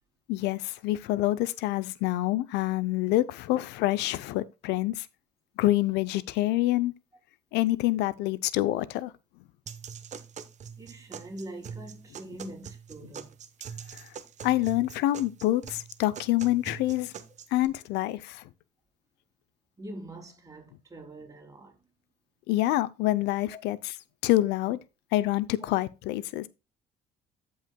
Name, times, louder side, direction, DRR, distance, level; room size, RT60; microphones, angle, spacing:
voice 1, 0.3-5.1 5.6-6.9 7.5-9.1 13.9-14.0 14.4-17.1 17.5-18.4 22.5-23.8 24.2-24.8 25.1-26.5, left 16 dB, 85° left, 0.5 m, -26 dB
sound 1, 9.7-17.6, right 7 dB, 45° right, 0.9 m, -43 dB
voice 2, 10.8-13.4 19.8-21.9 23.5-23.6, right 1 dB, 20° right, 3.2 m, -44 dB
15.0 x 5.5 x 2.2 m
cardioid pair, 110°, 17 cm